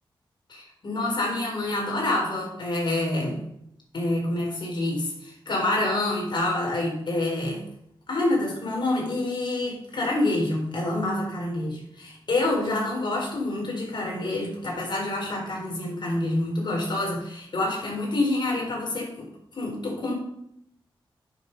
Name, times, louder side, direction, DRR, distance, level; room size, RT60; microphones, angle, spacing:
voice 1, 0.5-3.4 3.9-7.6 8.1-19.3 19.5-20.1, left 2 dB, 55° left, -1 dB, 4.4 m, -27 dB
10.5 x 7.0 x 5.4 m, 0.75 s
wide cardioid pair, 120°, 9 cm